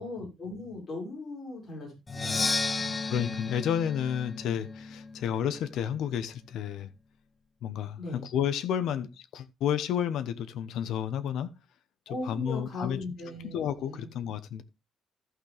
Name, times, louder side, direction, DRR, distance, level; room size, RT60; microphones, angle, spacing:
voice 1, 0.0-2.5 2.8-3.0 8.0-8.3 12.1-14.1, left 2 dB, 40° left, 5.5 m, -39 dB
Percussion, 2.1-5.9, left 3 dB, 20° left, 0.6 m, -33 dB
voice 2, 3.1-6.9 7.6-11.5 12.2-13.0 13.4-14.6, left 9 dB, 80° left, 1.0 m, -31 dB
14.0 x 6.1 x 3.4 m
cardioid pair, 155°, 0 cm